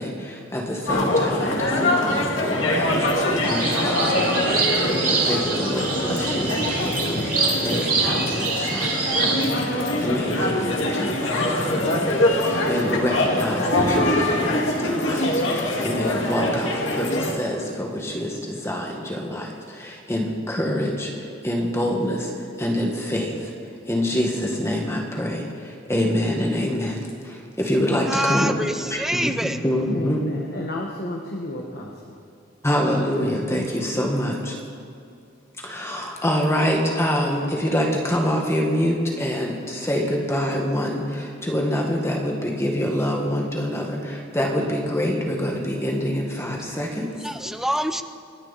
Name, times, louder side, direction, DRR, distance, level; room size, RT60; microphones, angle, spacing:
voice 1, 0.0-4.5 4.7-11.4 11.7-23.5 23.9-27.0 27.2-28.5 28.9-30.2 32.6-34.6 35.6-47.1, equal, 15° left, 1.7 m, -26 dB
sound 1, 0.9-17.3, left 1 dB, 85° left, 2.1 m, -23 dB
sound 2, 3.4-9.5, right 4 dB, 45° right, 3.0 m, -25 dB
voice 2, 28.1-29.6 47.2-48.0, equal, ahead, 0.5 m, -25 dB
voice 3, 29.9-32.1, left 1 dB, 55° left, 1.5 m, -32 dB
27.5 x 10.5 x 4.2 m
head